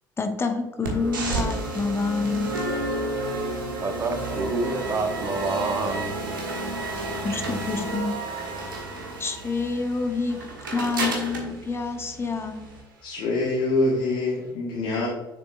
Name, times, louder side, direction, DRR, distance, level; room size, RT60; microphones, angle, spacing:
voice 1, 0.2-2.5 7.2-8.1 9.2-10.5 10.7-12.6, left 4 dB, 20° left, 7 dB, 0.9 m, -27 dB
sound 1, 0.8-12.8, right 2 dB, 75° right, 1.3 m, -31 dB
voice 2, 3.8-6.2 6.5-6.6, right 2 dB, 25° right, 6 dB, 1.0 m, -28 dB
voice 3, 13.0-15.1, left 2 dB, 55° left, -3 dB, 1.3 m, -25 dB
7.2 x 6.5 x 2.4 m, 1.2 s
figure-of-eight pair, 60°, 11 cm